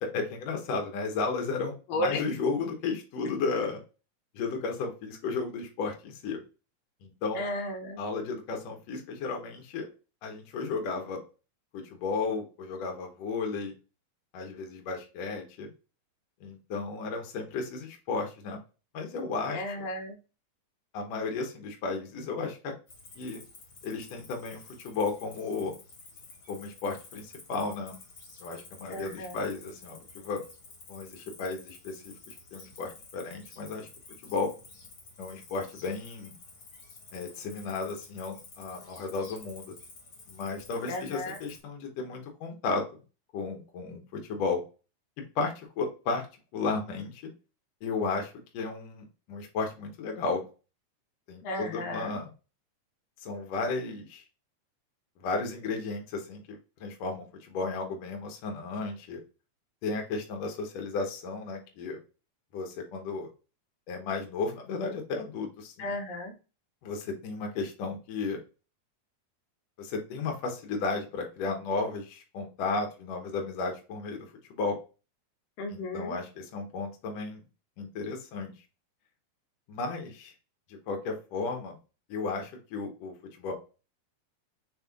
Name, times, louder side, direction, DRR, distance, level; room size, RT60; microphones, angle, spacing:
voice 1, 0.0-3.8 4.3-6.4 7.0-7.4 8.0-9.9 10.2-11.2 11.7-13.7 14.3-15.7 16.4-18.6 18.9-19.6 20.9-22.7 23.2-23.4 23.8-25.7 26.5-28.0 28.4-30.4 30.9-33.9 34.2-34.5 35.2-36.3 37.1-39.7 40.3-42.8 43.3-44.0 44.3-44.6 45.4-46.3 46.5-47.2 47.8-50.4 51.3-52.3 53.2-54.2 55.2-59.2 59.8-62.0 62.5-63.3 63.9-65.9 66.8-68.4 69.8-74.3 74.5-74.8 75.7-77.4 77.8-78.5 79.7-80.3 80.9-81.8 82.1-83.5, left 4 dB, 65° left, 2 dB, 1.9 m, -34 dB
voice 2, 1.9-2.2 7.3-8.0 19.5-20.2 28.9-29.5 40.9-41.4 51.4-52.2 65.8-66.3 75.6-76.2, left 1 dB, 85° left, 3 dB, 2.6 m, -34 dB
Cricket, 22.9-41.6, left 3 dB, 50° left, 1.7 m, -51 dB
5.4 x 3.5 x 2.3 m, 0.33 s
omnidirectional pair, 3.9 m